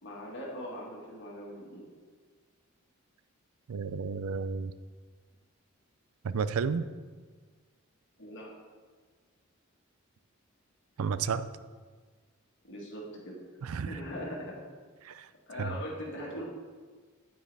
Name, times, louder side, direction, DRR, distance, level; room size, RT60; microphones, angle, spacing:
voice 1, 0.0-1.9 8.2-8.5 12.6-13.4 13.9-14.6 15.5-16.4, equal, 60° left, -2 dB, 1.6 m, -40 dB
voice 2, 3.7-4.7 6.2-6.8 11.0-11.5 13.6-14.0 15.1-15.3 15.6-15.8, right 5 dB, 80° right, 14 dB, 0.4 m, -32 dB
9.5 x 9.1 x 3.3 m, 1.5 s
head